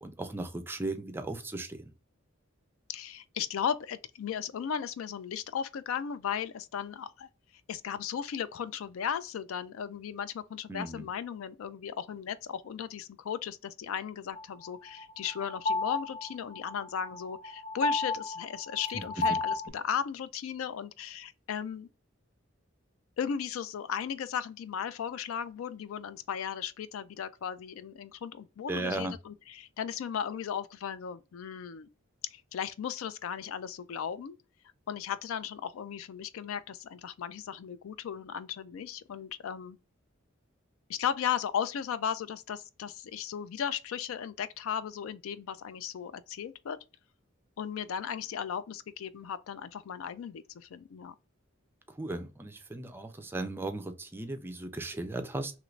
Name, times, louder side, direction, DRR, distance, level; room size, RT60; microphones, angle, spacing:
voice 1, 0.0-1.8 10.7-11.1 18.9-19.4 28.7-29.1 52.0-55.5, right 2 dB, 10° right, 0.4 m, -36 dB
voice 2, 2.9-7.3 7.7-21.9 23.2-31.9 32.3-34.4 34.9-39.8 40.9-46.8 47.6-51.2, left 8 dB, 85° left, 0.4 m, -36 dB
sound 1, 14.4-19.7, left 3 dB, 30° left, 0.7 m, -32 dB
2.9 x 2.5 x 3.1 m
head